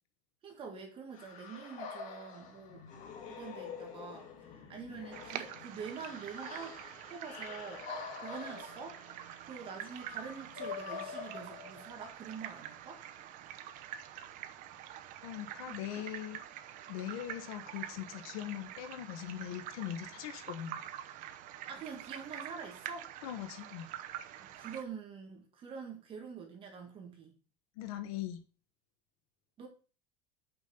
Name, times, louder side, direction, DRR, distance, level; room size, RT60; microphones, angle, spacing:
voice 1, 0.4-2.9 3.3-4.3 4.7-7.8 8.2-9.0 9.4-13.0 15.7-15.8 21.7-23.1 24.4-27.3 29.6-29.7, right 6 dB, 30° right, 1.8 m, -46 dB
sound 1, 1.1-12.2, left 6 dB, 45° left, 2.1 m, -46 dB
sound 2, 5.1-24.8, right 11 dB, 45° right, 0.9 m, -46 dB
voice 2, 15.2-16.4 16.9-20.9 23.2-23.9 27.8-28.4, left 11 dB, 90° left, 1.1 m, -41 dB
6.1 x 5.3 x 6.9 m
cardioid pair, 160°, 18 cm